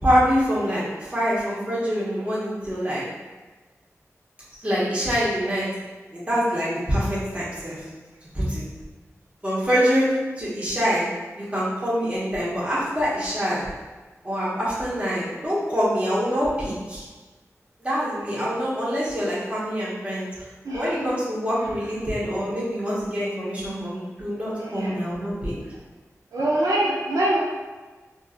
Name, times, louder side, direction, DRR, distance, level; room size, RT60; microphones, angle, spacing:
voice 1, 0.0-3.0 4.6-5.7 6.1-7.9 8.3-8.6 9.4-11.0 11.4-13.7 14.2-17.0 17.8-20.5 20.7-25.6, equal, 25° right, -9 dB, 1.3 m, -25 dB
voice 2, 20.6-21.0 24.6-25.0 26.3-27.4, right 1 dB, 90° right, -4 dB, 0.7 m, -24 dB
3.5 x 2.7 x 2.5 m, 1.3 s
cardioid pair, 45°, 6 cm